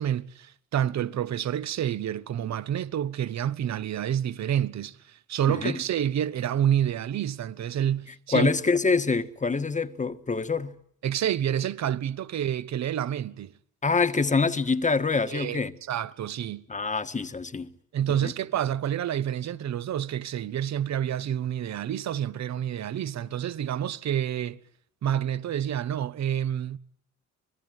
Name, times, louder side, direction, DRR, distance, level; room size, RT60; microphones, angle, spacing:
voice 1, 0.0-8.5 11.0-13.5 15.3-15.6 15.9-16.6 17.9-24.6 25.0-26.8, right 10 dB, 65° right, 1.2 m, -28 dB
voice 2, 5.5-5.8 8.3-10.7 13.8-15.7 16.7-17.7 18.1-18.3, left 4 dB, 25° left, 1.6 m, -25 dB
27.0 x 21.0 x 9.3 m
cardioid pair, 90°, 30 cm